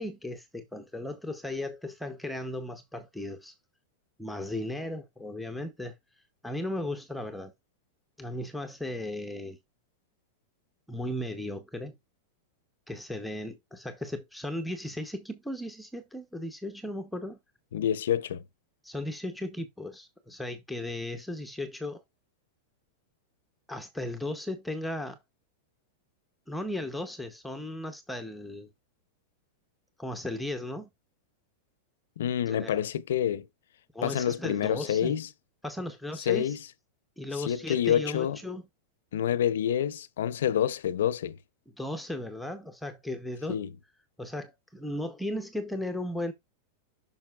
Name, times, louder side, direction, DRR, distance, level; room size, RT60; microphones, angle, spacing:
voice 1, 0.0-3.5 4.2-5.9 6.4-7.5 8.2-9.6 10.9-12.0 12.9-17.4 18.8-22.0 23.7-25.2 26.5-28.7 30.0-30.9 32.5-32.8 33.9-35.2 35.6-36.6 37.2-38.6 41.8-43.6 44.2-46.3, left 1 dB, ahead, 0.5 m, -36 dB
voice 2, 17.7-18.4 32.2-33.5 34.0-35.3 36.3-36.6 37.4-38.4 39.1-41.4 43.5-43.7, left 10 dB, 85° left, 0.6 m, -27 dB
8.9 x 5.7 x 2.3 m
supercardioid pair, 165°, 0 cm